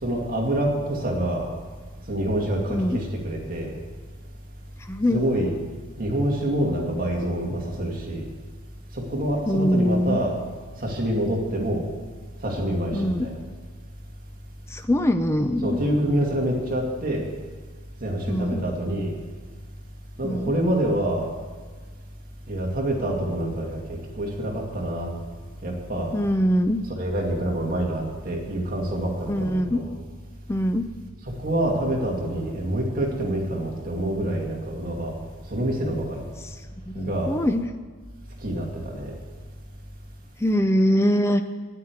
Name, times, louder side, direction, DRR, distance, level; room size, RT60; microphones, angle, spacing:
voice 1, 0.0-1.5 2.1-3.8 5.1-5.5 6.0-8.2 8.9-10.4 10.8-11.9 12.4-13.4 15.6-17.3 18.0-19.1 20.2-21.3 22.5-25.1 25.6-26.1 27.0-29.9 31.4-35.1 35.5-36.2 36.9-37.3 38.4-39.2, right 1 dB, 40° right, -1 dB, 2.3 m, -26 dB
voice 2, 4.9-5.2 9.5-10.2 12.9-13.3 14.7-15.8 18.3-18.6 20.2-20.5 26.1-26.8 29.3-29.8 30.5-30.9 36.4-36.6 37.0-37.7 40.4-41.4, equal, 10° left, 7 dB, 0.4 m, -22 dB
10.0 x 9.5 x 9.2 m, 1.5 s
head